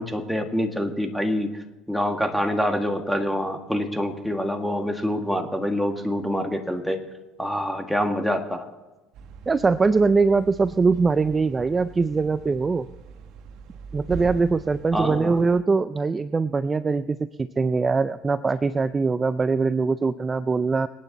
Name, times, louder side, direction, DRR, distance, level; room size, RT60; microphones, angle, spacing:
voice 1, 0.0-7.0 7.4-8.7 14.9-15.4, equal, ahead, 4 dB, 1.8 m, -26 dB
sound 1, 9.1-15.6, right 6 dB, 65° right, 1.1 m, -42 dB
voice 2, 9.5-12.9 13.9-20.9, right 4 dB, 20° right, 13 dB, 0.4 m, -22 dB
27.5 x 9.3 x 4.1 m, 1.1 s
cardioid pair, 115°, 0 cm